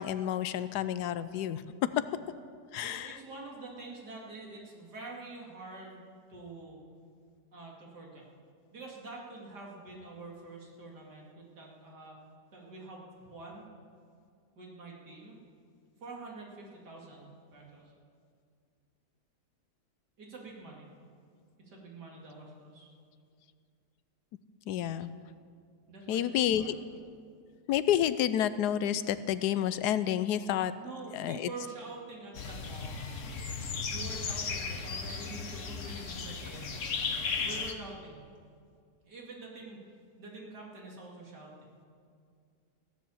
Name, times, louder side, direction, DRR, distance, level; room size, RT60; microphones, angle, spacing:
voice 1, 0.0-1.6 2.0-2.1 2.7-3.1 24.7-25.1 26.1-26.7 27.7-30.7 31.1-31.5, left 11 dB, 80° left, 13 dB, 1.2 m, -29 dB
voice 2, 2.8-6.0 6.3-6.8 7.5-8.2 8.7-12.2 12.5-13.7 14.6-15.4 16.0-17.9 20.2-20.9 21.6-22.9 25.9-26.8 30.8-33.2 33.9-36.7 37.4-38.2 39.1-39.8 40.2-41.5, right 3 dB, 80° right, -2 dB, 3.1 m, -46 dB
sound 1, 32.3-37.7, left 5 dB, 50° left, 1.3 m, -36 dB
16.0 x 10.0 x 7.1 m, 2.3 s
omnidirectional pair, 1.7 m